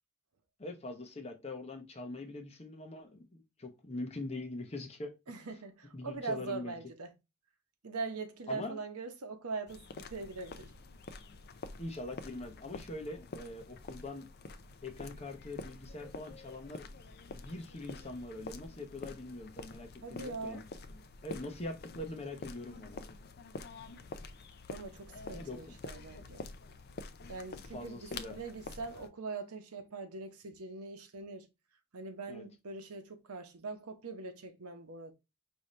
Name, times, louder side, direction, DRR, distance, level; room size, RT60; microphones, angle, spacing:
voice 1, 0.6-5.1 5.9-6.8 8.5-8.8 11.8-14.3 14.8-16.9 17.3-20.6 21.2-23.0 25.3-25.7 27.7-28.4 32.3-32.4, left 2 dB, 30° left, 0.8 m, -43 dB
voice 2, 5.3-7.1 7.8-10.7 20.0-20.6 24.7-26.5 27.3-31.5 31.9-35.1, right 4 dB, 90° right, 0.8 m, -42 dB
sound 1, 9.7-29.1, left 3 dB, 45° left, 0.4 m, -48 dB
5.3 x 2.8 x 3.1 m
head